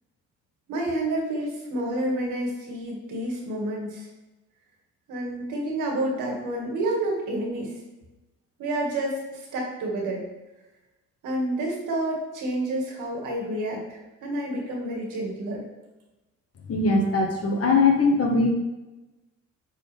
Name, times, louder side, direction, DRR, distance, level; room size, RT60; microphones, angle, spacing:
voice 1, 0.7-4.1 5.1-7.8 8.6-10.2 11.2-15.7, right 1 dB, 85° right, -1 dB, 2.1 m, -29 dB
voice 2, 16.7-18.5, left 3 dB, 50° left, 1 dB, 1.5 m, -21 dB
9.3 x 4.3 x 3.5 m, 1.0 s
cardioid pair, 90°, 30 cm